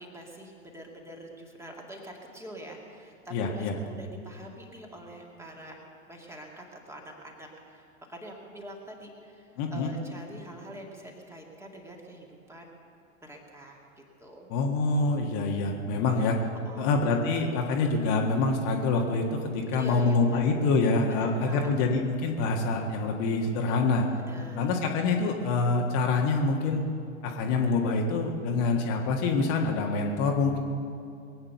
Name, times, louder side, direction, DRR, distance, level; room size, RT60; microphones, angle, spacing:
voice 1, 0.0-5.8 6.1-12.7 13.2-13.8 14.2-14.5 16.0-16.4 16.7-16.9 19.7-20.4 21.1-21.7 24.2-24.7, right 1 dB, 5° right, -1 dB, 2.2 m, -45 dB
voice 2, 3.3-3.7 9.6-9.9 14.5-16.4 16.8-24.1 24.5-26.8 27.2-30.6, left 3 dB, 40° left, 1 dB, 1.7 m, -26 dB
22.0 x 8.7 x 6.9 m, 2.4 s
figure-of-eight pair, 95°, 39 cm